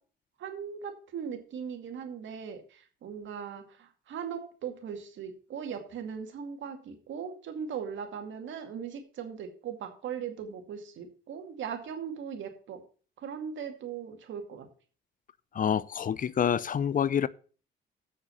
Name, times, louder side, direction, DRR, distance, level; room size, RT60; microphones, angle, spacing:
voice 1, 0.4-12.8 13.2-14.7, right 7 dB, 70° right, 2.3 m, -39 dB
voice 2, 15.5-17.3, left 8 dB, 45° left, 0.5 m, -27 dB
7.6 x 6.6 x 7.0 m
cardioid pair, 90°, 20 cm